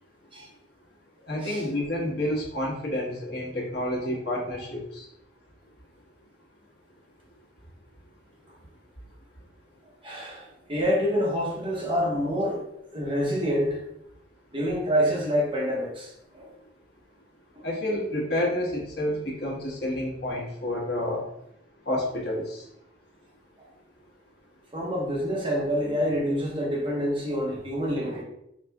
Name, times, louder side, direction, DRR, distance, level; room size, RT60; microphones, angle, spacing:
voice 1, 1.3-5.1 17.6-21.2 21.9-22.6, left 1 dB, 65° left, -4 dB, 1.4 m, -29 dB
voice 2, 10.0-12.6 12.9-13.8 14.5-16.5 17.5-17.6 24.7-28.2, equal, 30° right, -3 dB, 1.2 m, -27 dB
5.0 x 2.5 x 3.5 m, 0.77 s
head